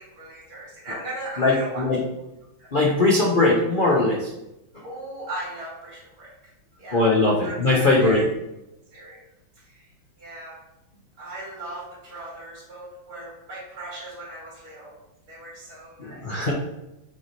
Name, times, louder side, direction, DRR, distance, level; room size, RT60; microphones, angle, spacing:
voice 1, 0.0-1.9 2.6-2.7 4.8-6.3 6.8-7.1 7.4-8.2 8.9-9.2 9.6-9.9 10.2-10.6 11.2-15.0 15.3-16.3, right 1 dB, 75° right, -9 dB, 2.9 m, -38 dB
voice 2, 1.4-2.0 2.7-4.3 6.9-8.2 16.0-16.5, left 2 dB, 60° left, -3 dB, 0.5 m, -20 dB
7.3 x 3.2 x 4.2 m, 0.92 s
omnidirectional pair, 2.3 m